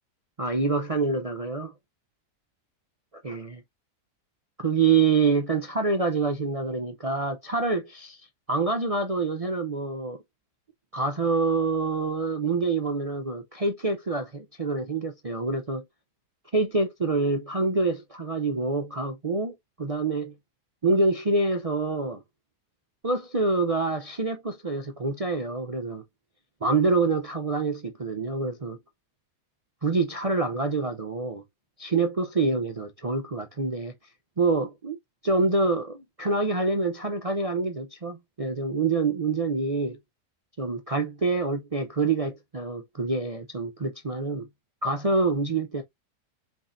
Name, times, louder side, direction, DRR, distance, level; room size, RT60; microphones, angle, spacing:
voice 1, 0.4-1.7 3.2-3.6 4.6-8.2 8.5-10.2 10.9-15.8 16.5-20.3 20.8-22.2 23.0-26.0 26.6-28.8 29.8-31.4 31.8-33.9 34.4-35.0 35.2-40.0 40.6-44.5 44.8-45.8, right 3 dB, 65° right, 0.3 m, -26 dB
4.6 x 4.3 x 2.6 m
omnidirectional pair, 1.8 m